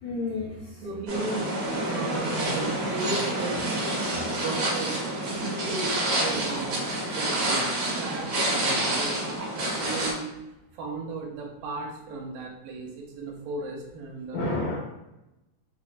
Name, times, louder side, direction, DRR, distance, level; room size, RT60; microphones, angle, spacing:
voice 1, 0.0-0.8 14.3-14.8, left 2 dB, 90° left, -2 dB, 1.7 m, -30 dB
voice 2, 0.8-3.6 4.4-5.0 5.6-7.7 8.0-9.3 9.8-10.3 10.7-14.5, right 3 dB, 80° right, -2 dB, 2.3 m, -35 dB
sound 1, 1.1-10.1, right 1 dB, 65° right, 2.0 m, -28 dB
5.4 x 2.1 x 2.4 m, 0.96 s
omnidirectional pair, 4.0 m